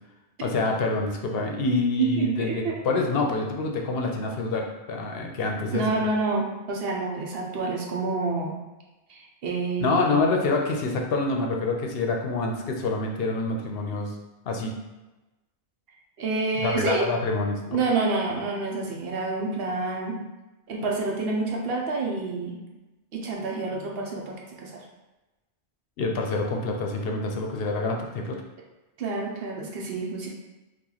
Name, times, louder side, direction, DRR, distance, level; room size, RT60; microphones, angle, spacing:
voice 1, 0.4-5.8 9.8-14.2 14.4-14.8 16.6-17.8 26.0-28.4, left 3 dB, 70° left, 2 dB, 0.7 m, -26 dB
voice 2, 2.0-2.7 5.7-8.5 9.1-10.3 16.2-17.1 17.7-20.1 20.7-22.7 23.1-24.7 29.0-30.3, right 3 dB, 70° right, -1 dB, 0.9 m, -28 dB
3.0 x 2.4 x 3.8 m, 1.1 s
omnidirectional pair, 1.1 m